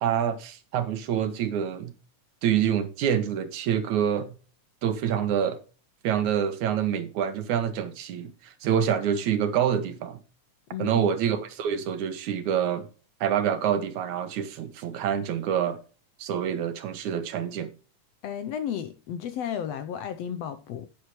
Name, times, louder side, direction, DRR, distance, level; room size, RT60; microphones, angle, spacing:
voice 1, 0.0-1.9 2.4-4.3 4.8-5.6 6.0-10.2 10.8-12.9 13.2-15.8 16.2-17.7, right 9 dB, 75° right, 2.6 m, -26 dB
voice 2, 10.7-11.0 18.2-20.9, left 9 dB, 75° left, 1.6 m, -33 dB
10.0 x 9.2 x 3.2 m
omnidirectional pair, 3.5 m